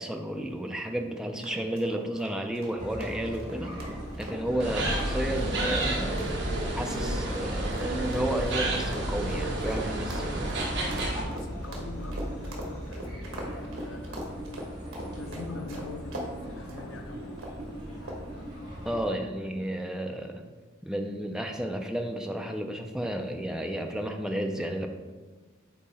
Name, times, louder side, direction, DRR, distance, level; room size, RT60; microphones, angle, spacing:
voice 1, 0.0-3.7 4.2-6.3 6.8-10.3 18.8-20.4 20.8-24.9, right 1 dB, 5° right, 0.4 m, -32 dB
sound 1, 1.4-16.3 16.7-16.9 17.4-17.7 18.1-18.4, right 1 dB, 80° right, 1.2 m, -41 dB
sound 2, 2.8-19.1, equal, 20° right, 1.7 m, -39 dB
sound 3, 4.6-11.2, right 1 dB, 55° right, 1.1 m, -30 dB
voice 2, 11.0-14.3 15.2-17.5, left 3 dB, 70° left, 0.6 m, -43 dB
8.3 x 2.9 x 4.2 m
head